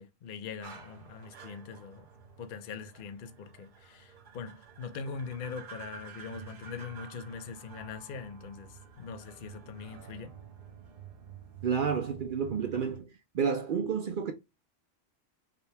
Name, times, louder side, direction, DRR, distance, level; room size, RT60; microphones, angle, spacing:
voice 1, 0.0-2.1 2.4-10.3, left 5 dB, 55° left, 0.6 m, -42 dB
sound 1, 0.6-13.0, right 8 dB, 45° right, 0.9 m, -50 dB
voice 2, 11.6-13.1 13.3-14.3, right 6 dB, 65° right, 0.5 m, -30 dB
5.0 x 2.2 x 3.3 m
omnidirectional pair, 1.4 m